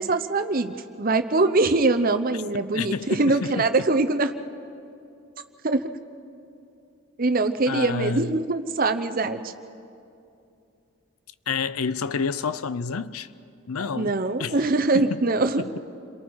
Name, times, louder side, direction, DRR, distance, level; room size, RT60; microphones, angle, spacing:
voice 1, 0.0-4.3 5.6-5.8 7.2-9.5 13.9-15.8, right 3 dB, 40° right, 0.8 m, -23 dB
voice 2, 2.7-3.6 7.7-8.5 11.5-13.3 13.7-14.6 14.9-15.2, left 5 dB, 90° left, 0.6 m, -29 dB
29.5 x 22.5 x 4.8 m
head